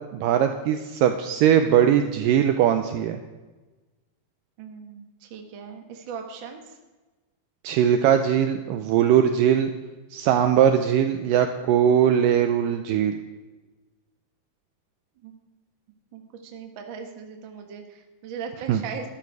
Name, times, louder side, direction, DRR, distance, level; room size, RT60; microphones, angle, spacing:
voice 1, 0.1-3.2 7.6-9.7 10.1-13.2 18.7-18.8, right 9 dB, 85° right, 7 dB, 2.0 m, -20 dB
voice 2, 4.6-6.8 15.2-15.4 16.1-19.1, right 6 dB, 65° right, 3 dB, 1.1 m, -39 dB
13.0 x 11.5 x 4.7 m, 1.2 s
omnidirectional pair, 4.5 m